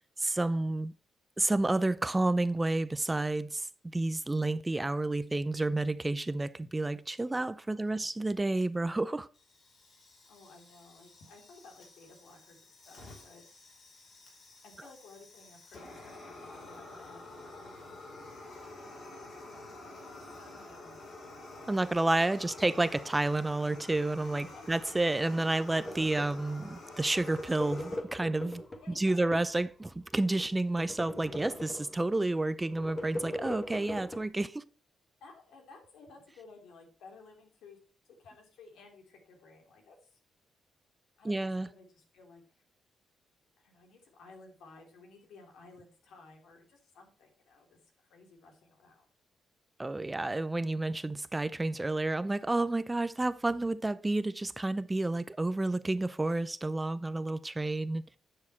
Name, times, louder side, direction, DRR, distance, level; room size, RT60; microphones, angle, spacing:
voice 1, 0.2-0.9 1.4-3.7 3.9-9.3 21.7-28.6 29.0-34.6 41.2-41.7 49.8-58.2, right 2 dB, 15° right, 0.4 m, -30 dB
voice 2, 7.6-8.1 10.3-13.4 14.6-18.0 18.5-18.9 19.9-21.0 22.3-22.7 24.4-24.7 28.8-29.2 35.2-37.8 38.0-40.2 41.2-42.6 43.6-49.0, left 3 dB, 85° left, 2.9 m, -56 dB
Fire, 9.3-28.0, left 2 dB, 50° left, 4.4 m, -49 dB
sound 1, 25.8-26.6 27.0-29.7 30.1-32.1 32.6-34.2, left 1 dB, 25° left, 1.2 m, -40 dB
9.8 x 6.5 x 4.3 m
cardioid pair, 120°, 0 cm